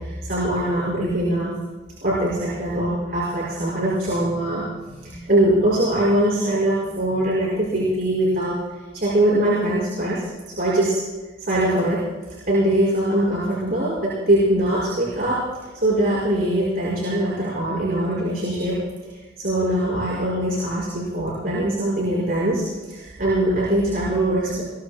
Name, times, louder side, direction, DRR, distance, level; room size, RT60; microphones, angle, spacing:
voice 1, 0.0-1.6 2.0-8.6 8.9-10.2 10.6-11.0 11.4-12.0 12.3-15.4 15.7-19.1 19.4-22.6 22.9-24.6, right 1 dB, 50° right, -6 dB, 5.4 m, -22 dB
29.0 x 22.5 x 2.2 m, 1.3 s
head